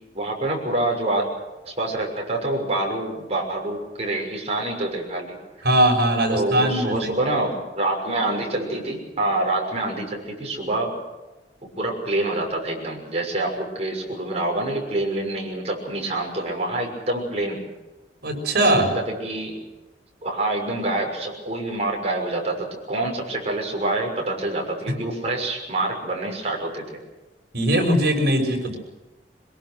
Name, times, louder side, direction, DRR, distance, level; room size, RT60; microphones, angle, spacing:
voice 1, 0.1-1.3 1.6-5.4 6.3-10.9 11.8-17.6 18.5-19.5 20.2-26.8, right 2 dB, 40° right, 0 dB, 6.4 m, -26 dB
voice 2, 5.6-7.1 18.2-18.9 27.5-28.8, right 1 dB, 65° right, 2 dB, 6.3 m, -20 dB
24.0 x 22.0 x 6.4 m, 1.1 s
head